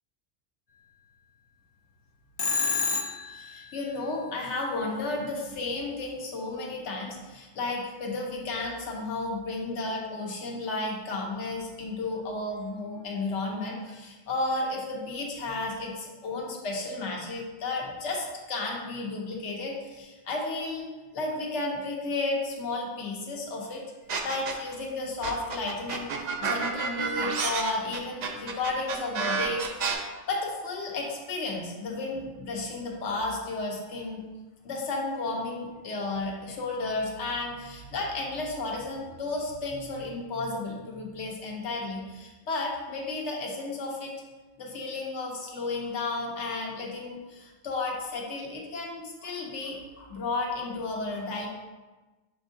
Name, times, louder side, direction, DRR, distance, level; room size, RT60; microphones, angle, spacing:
Telephone, 2.4-3.5, left 5 dB, 55° left, 0.4 m, -27 dB
voice 1, 3.3-20.9 21.1-23.8 24.2-26.1 26.4-34.2 34.6-44.1 44.6-51.5, left 2 dB, 85° left, 0 dB, 1.1 m, -33 dB
sound 1, 24.1-24.7 25.2-29.9, right 5 dB, 60° right, 0.5 m, -29 dB
5.7 x 3.5 x 2.6 m, 1.2 s
omnidirectional pair, 1.2 m